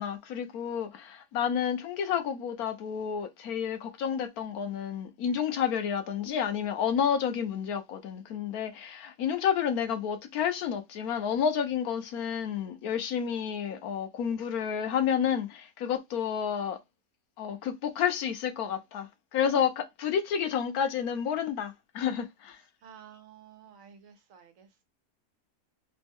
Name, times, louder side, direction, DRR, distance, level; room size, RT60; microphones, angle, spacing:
voice 1, 0.0-16.8 17.4-22.6, left 8 dB, 85° left, 1.2 m, -30 dB
voice 2, 22.8-24.8, right 8 dB, 65° right, 1.1 m, -52 dB
3.4 x 2.1 x 3.4 m
omnidirectional pair, 1.5 m